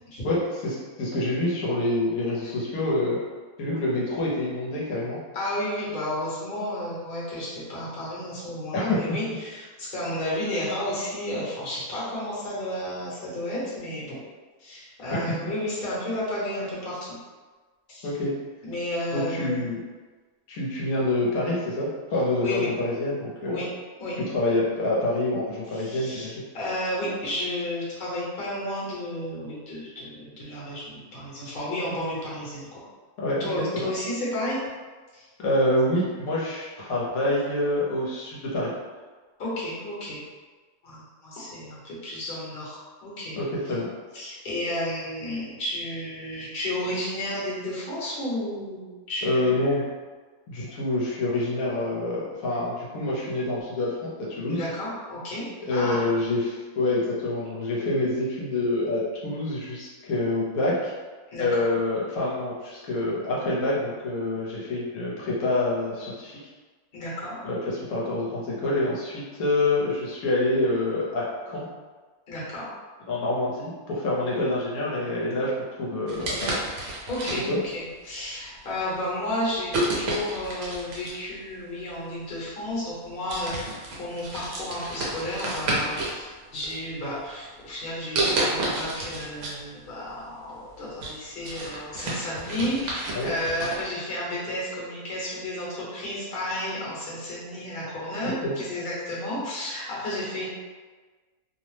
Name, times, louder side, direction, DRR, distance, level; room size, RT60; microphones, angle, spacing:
voice 1, 0.2-3.2 3.6-5.2 8.7-9.0 15.1-15.3 18.0-18.3 19.1-19.8 20.5-23.6 24.3-26.4 33.2-33.9 35.4-38.7 43.4-43.9 49.2-49.8 50.5-54.6 55.6-60.9 61.4-66.4 67.4-71.6 73.1-76.5 77.4-77.6 93.1-93.3 98.2-98.5, left 2 dB, 80° left, -6 dB, 1.1 m, -26 dB
voice 2, 5.3-14.2 14.6-17.1 17.9-18.1 18.6-19.6 22.4-22.7 23.5-23.6 24.0-24.2 25.7-32.8 33.4-34.6 35.1-35.3 39.4-40.2 40.8-43.4 44.1-49.7 54.5-55.4 55.7-56.0 61.3-61.7 66.9-67.4 72.3-72.7 77.1-100.5, left 1 dB, 45° left, -7 dB, 1.0 m, -32 dB
sound 1, 76.1-77.7 78.5-78.7 79.7-81.3 82.4-82.5 82.9-83.0 83.3-86.2 86.5-87.3 88.2-89.6 89.9-90.0 90.5-93.8, right 2 dB, 65° right, 0.9 m, -30 dB
2.7 x 2.0 x 3.1 m, 1.4 s
omnidirectional pair, 1.6 m